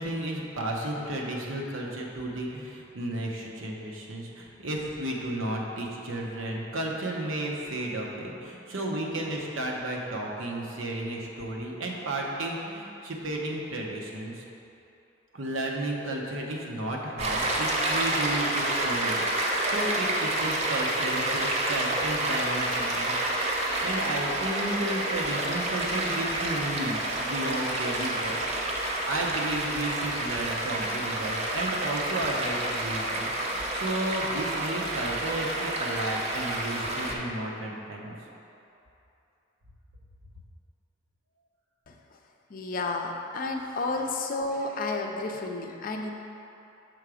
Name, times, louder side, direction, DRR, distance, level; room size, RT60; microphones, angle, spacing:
voice 1, 0.0-14.4 15.3-23.1 23.8-28.4 28.8-38.1, right 1 dB, 85° right, -1 dB, 0.9 m, -33 dB
Stream, 17.2-37.1, right 1 dB, 35° right, 0.6 m, -29 dB
voice 2, 41.9-42.2 42.5-46.1, left 3 dB, 45° left, 2 dB, 0.5 m, -31 dB
6.3 x 3.8 x 4.8 m, 2.9 s
head